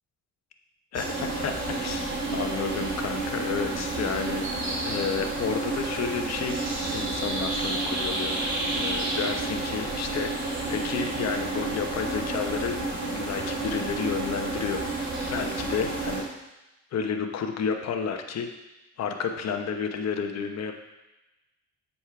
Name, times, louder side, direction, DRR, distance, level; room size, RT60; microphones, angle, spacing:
voice 1, 0.9-2.0 2.3-4.5 4.8-6.6 6.9-12.8 13.1-16.2 16.9-18.5 19.0-20.7, left 6 dB, 60° left, 5 dB, 1.0 m, -31 dB
sound 1, 0.9-16.2, right 2 dB, 40° right, 3.0 m, -30 dB
8.2 x 4.3 x 5.9 m, 1.0 s
cardioid pair, 90°, 30 cm